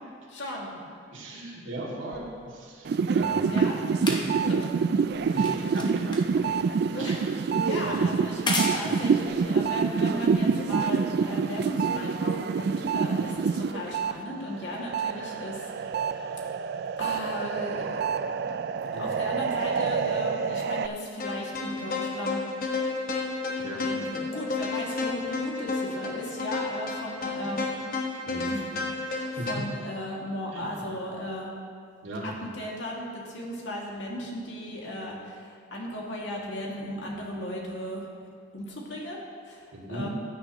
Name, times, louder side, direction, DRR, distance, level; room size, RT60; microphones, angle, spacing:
voice 1, 0.3-0.8 3.0-3.1 3.5-3.8 4.3-4.8 5.2-5.9 6.9-7.2 7.7-16.2 17.0-22.4 23.6-27.7 28.4-29.2 29.5-31.5 32.2-38.1 38.5-40.1, left 1 dB, 75° left, -3 dB, 2.1 m, -36 dB
voice 2, 1.1-3.6 4.0-4.3 5.3-6.0 6.4-6.5 7.0-7.2 8.1-8.2 8.8-9.0 18.9-19.0 23.6-23.9 28.2-28.5 29.3-29.6 30.5-31.1 32.0-32.4 39.7-40.1, right 1 dB, 85° right, -4 dB, 2.3 m, -38 dB
sound 1, 2.1-10.7 11.6-11.7, left 2 dB, 25° left, 1.0 m, -37 dB
sound 2, 2.8-14.1 14.5-20.9, right 5 dB, 55° right, 0.3 m, -27 dB
sound 3, 21.2-29.5, left 3 dB, 50° left, 1.3 m, -31 dB
15.5 x 9.5 x 3.0 m, 2.1 s
head